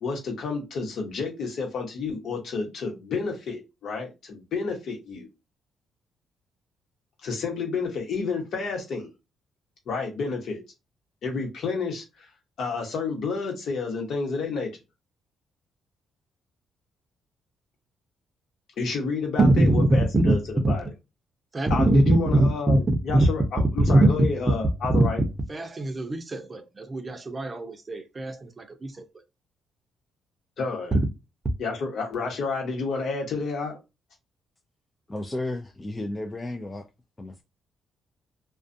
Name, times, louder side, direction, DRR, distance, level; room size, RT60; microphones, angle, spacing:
voice 1, 0.0-5.3 7.2-9.1 9.9-10.6 11.2-12.0 12.6-14.7 18.8-20.8 21.7-25.2 30.6-30.9 31.6-33.8, left 4 dB, 65° left, 1.1 m, -30 dB
voice 2, 19.4-19.9 20.1-20.3 20.6-20.7 21.5-22.2 22.7-22.8 23.9-24.0 24.9-25.0 25.5-29.0, right 2 dB, 30° right, 0.6 m, -22 dB
voice 3, 35.1-36.9 37.2-37.4, left 1 dB, 20° left, 0.4 m, -33 dB
2.3 x 2.3 x 2.6 m
cardioid pair, 90°, 0 cm